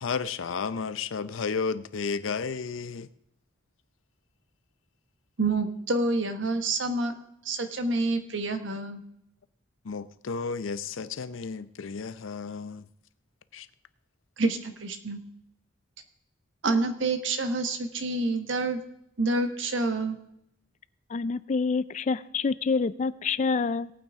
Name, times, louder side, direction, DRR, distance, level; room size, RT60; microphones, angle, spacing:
voice 1, 0.0-3.1 9.8-12.9 13.5-13.7, left 5 dB, 85° left, 15 dB, 0.6 m, -32 dB
voice 2, 5.4-7.1 7.4-9.0 14.4-15.2 16.6-18.8 19.2-20.2, right 2 dB, 70° right, 8 dB, 1.3 m, -27 dB
voice 3, 21.1-23.9, left 4 dB, 40° left, 17 dB, 0.4 m, -27 dB
18.0 x 8.9 x 3.6 m, 0.78 s
head